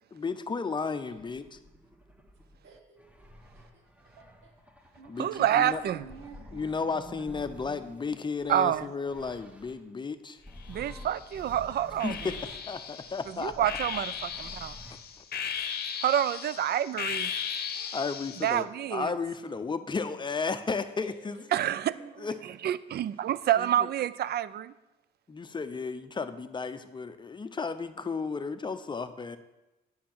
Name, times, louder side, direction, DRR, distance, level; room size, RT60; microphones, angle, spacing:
voice 1, 0.1-1.4 5.1-5.8 6.5-10.4 12.0-12.4 12.7-13.5 17.9-21.4 22.2-22.3 23.6-23.7 25.3-29.4, left 4 dB, 25° left, 10 dB, 0.6 m, -33 dB
voice 2, 0.8-1.2 2.6-3.3 3.5-3.8 4.2-4.5 5.0-5.6 5.8-7.9 17.4-18.0 21.0-21.1 21.8-22.4, right 5 dB, 75° right, 1 dB, 1.8 m, -51 dB
sound 1, 1.1-9.9 10.4-15.2, equal, 5° right, 1.1 m, -51 dB
voice 3, 5.2-6.0 8.5-8.9 10.7-12.2 13.3-14.8 16.0-17.3 18.4-19.1 21.5-21.9 22.4-24.7, right 11 dB, 55° right, 17 dB, 0.4 m, -28 dB
sound 2, 10.6-11.4 12.0-18.6, left 7 dB, 50° left, 0.8 m, -37 dB
8.4 x 5.5 x 6.1 m, 1.0 s
cardioid pair, 90°, 20 cm